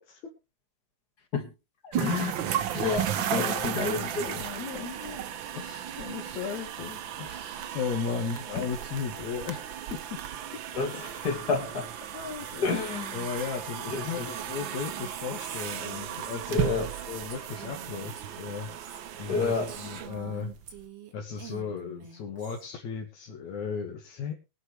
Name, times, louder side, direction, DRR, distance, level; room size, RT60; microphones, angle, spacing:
voice 1, 1.8-2.5 2.7-4.4 10.8-11.9 12.6-13.2 13.9-14.3 16.5-16.9 19.3-19.7, left 4 dB, 40° left, 2.1 m, -29 dB
sound 1, 1.9-20.8, right 10 dB, 80° right, 1.1 m, -35 dB
voice 2, 2.7-9.6 9.9-10.2 12.1-12.8 13.1-20.5 21.1-24.3, left 6 dB, 75° left, 3.0 m, -36 dB
Female speech woman speaking, 14.3-21.1 21.4-22.7, right 6 dB, 60° right, 3.0 m, -46 dB
22.5 x 8.1 x 3.2 m
omnidirectional pair, 3.4 m